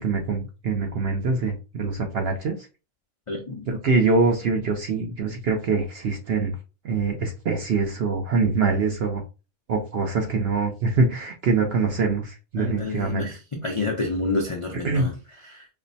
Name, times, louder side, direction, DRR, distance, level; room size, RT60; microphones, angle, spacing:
voice 1, 0.0-2.6 3.7-6.6 6.8-9.2 9.7-13.3 14.8-15.1, right 4 dB, 60° right, 3 dB, 0.6 m, -24 dB
voice 2, 3.3-3.7 12.6-15.7, left 3 dB, 55° left, 1 dB, 0.3 m, -29 dB
5.1 x 2.0 x 2.6 m, 0.31 s
omnidirectional pair, 1.5 m